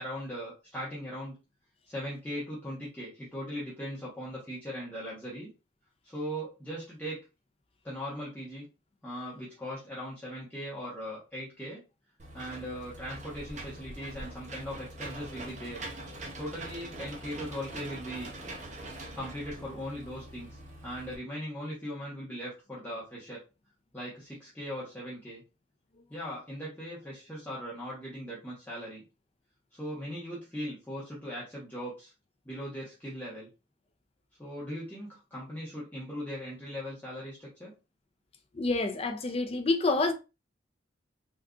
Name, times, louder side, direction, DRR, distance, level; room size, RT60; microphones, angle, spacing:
voice 1, 0.0-1.4 1.9-5.5 6.0-7.2 7.8-8.7 9.0-11.8 12.3-15.8 16.4-18.3 19.1-20.5 20.8-23.4 23.9-25.4 26.1-29.0 29.7-32.1 32.4-33.5 34.4-37.7, equal, 10° left, 0.9 m, -39 dB
Engine / Mechanisms, 12.2-21.2, right 1 dB, 40° right, 0.7 m, -43 dB
voice 2, 38.5-40.1, left 3 dB, 30° left, 0.4 m, -27 dB
3.6 x 2.5 x 2.3 m
head